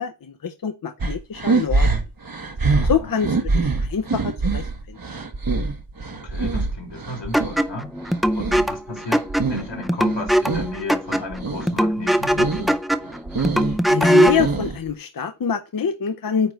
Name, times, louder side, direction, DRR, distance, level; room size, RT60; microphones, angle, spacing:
voice 1, 0.0-1.9 2.8-5.0 13.9-16.5, left 7 dB, 50° left, 0.6 m, -25 dB
sound 1, 1.0-7.6 8.0-9.7 10.0-10.8 11.1-11.7 12.1-12.7 13.0-14.9, right 3 dB, 55° right, 1.2 m, -24 dB
voice 2, 2.7-3.2 6.1-7.9 8.3-12.8, left 2 dB, 85° left, 3.3 m, -34 dB
sound 2, 7.3-14.5, equal, ahead, 0.5 m, -21 dB
9.2 x 3.1 x 6.3 m
wide cardioid pair, 80°, 43 cm